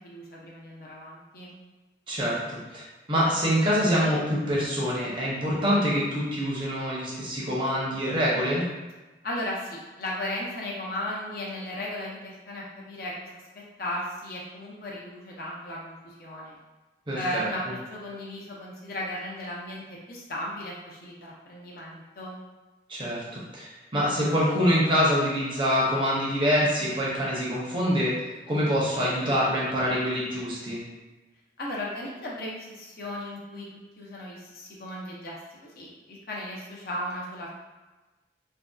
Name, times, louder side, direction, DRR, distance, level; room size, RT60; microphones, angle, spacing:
voice 1, 0.0-1.6 9.2-16.6 17.1-22.4 31.6-33.7 34.0-35.4 35.6-37.6, left 1 dB, 55° left, -4 dB, 0.5 m, -36 dB
voice 2, 2.1-2.8 3.1-8.6 17.1-17.4 22.9-30.8, equal, 25° right, -6 dB, 0.6 m, -25 dB
2.6 x 2.1 x 2.2 m, 1.2 s
head